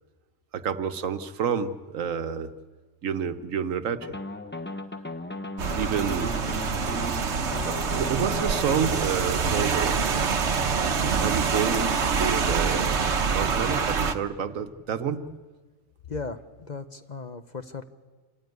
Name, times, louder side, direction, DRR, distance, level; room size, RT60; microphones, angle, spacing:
voice 1, 0.5-2.5 3.0-4.1 5.8-6.5 7.7-10.0 11.2-13.0 13.3-15.4, right 7 dB, 85° right, 10 dB, 1.3 m, -29 dB
sound 1, 4.0-9.0, left 1 dB, 10° left, 0.8 m, -36 dB
Rain, 5.6-14.1, right 5 dB, 60° right, 1.3 m, -26 dB
voice 2, 16.1-17.8, left 4 dB, 40° left, 9 dB, 0.9 m, -36 dB
27.0 x 15.0 x 9.4 m, 1.4 s
omnidirectional pair, 1.3 m